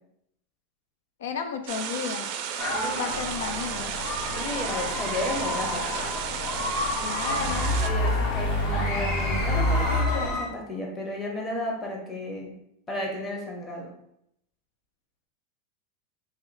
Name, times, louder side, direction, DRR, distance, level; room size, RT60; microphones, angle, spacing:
voice 1, 1.2-2.3 2.9-3.9 7.0-7.8, left 6 dB, 85° left, 7 dB, 0.3 m, -33 dB
sound 1, 1.7-7.9, right 8 dB, 50° right, 0.4 m, -33 dB
sound 2, 2.6-10.5, left 2 dB, 45° left, 0.8 m, -32 dB
voice 2, 2.7-3.0 4.3-6.1 7.3-7.4 7.8-12.5 12.9-13.9, left 1 dB, 20° left, -1 dB, 0.9 m, -33 dB
sound 3, 3.1-10.3, left 1 dB, 65° left, 1.3 m, -29 dB
3.0 x 2.9 x 3.9 m, 0.77 s
supercardioid pair, 150°, 0 cm